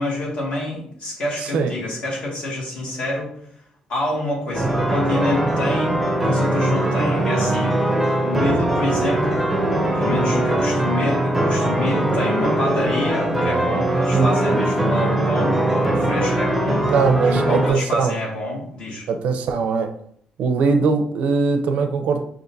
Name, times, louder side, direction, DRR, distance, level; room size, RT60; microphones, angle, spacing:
voice 1, 0.0-3.3 3.9-9.5 9.9-16.9 17.2-19.1, left 1 dB, 55° left, -4 dB, 1.7 m, -27 dB
sound 1, 4.5-17.7, right 1 dB, 5° right, 0.6 m, -21 dB
voice 2, 14.1-14.6 16.9-18.2 19.1-19.9 20.4-22.2, right 5 dB, 70° right, 7 dB, 0.5 m, -21 dB
6.3 x 2.5 x 2.6 m, 0.68 s
cardioid pair, 150°, 2 cm